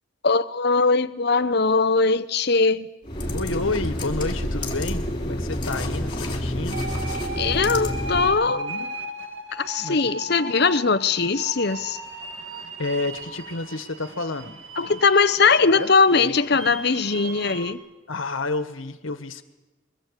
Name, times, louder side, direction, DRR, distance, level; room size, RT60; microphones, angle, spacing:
voice 1, 0.2-2.9 7.4-8.7 9.5-12.0 14.8-17.8, left 4 dB, 55° left, 0.8 m, -20 dB
sound 1, 3.0-8.4, left 1 dB, 25° left, 3.2 m, -28 dB
voice 2, 3.3-6.8 8.5-8.9 9.8-10.7 12.8-15.0 15.7-16.6 18.1-19.4, left 3 dB, 80° left, 1.5 m, -31 dB
sound 2, 6.7-17.7, right 2 dB, 75° right, 2.1 m, -36 dB
23.5 x 20.5 x 8.2 m
head